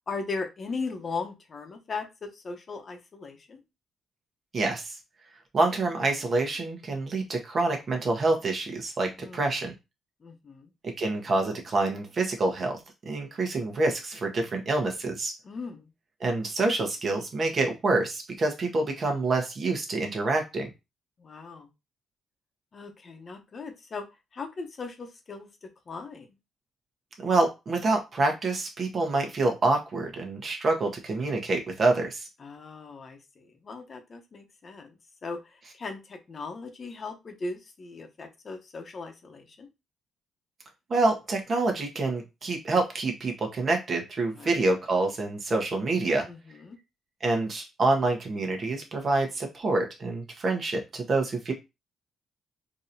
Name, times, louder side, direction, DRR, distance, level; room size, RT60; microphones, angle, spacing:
voice 1, 0.1-3.6 9.2-9.5 10.2-10.7 15.4-15.9 21.2-21.7 22.7-24.0 24.3-25.5 25.9-26.3 32.4-34.9 35.2-39.7 44.3-44.6 46.3-46.8, left 4 dB, 40° left, 5 dB, 0.8 m, -38 dB
voice 2, 4.5-5.0 5.5-9.7 10.8-12.8 13.0-15.3 16.2-20.7 27.2-32.3 40.9-46.3 47.2-51.5, right 2 dB, 45° right, 3 dB, 1.1 m, -27 dB
3.8 x 2.9 x 2.7 m, 0.24 s
cardioid pair, 90°, 0 cm